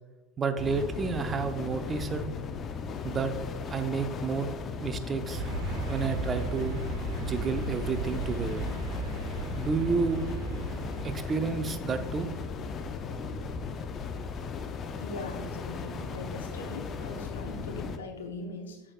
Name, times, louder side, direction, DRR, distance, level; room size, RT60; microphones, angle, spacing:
voice 1, 0.4-2.3 3.0-3.3 3.7-4.5 4.8-5.5 5.9-6.8 7.2-8.6 9.5-10.2 11.0-12.3, right 5 dB, 25° right, 9 dB, 0.7 m, -30 dB
sound 1, 0.6-18.0, left 5 dB, 35° left, 0.6 m, -37 dB
sound 2, 5.3-11.3, right 2 dB, 55° right, 1.4 m, -35 dB
voice 2, 15.0-18.8, left 2 dB, 80° left, 3 dB, 1.1 m, -40 dB
8.5 x 6.5 x 2.5 m, 1.1 s
hypercardioid pair, 80°, 0 cm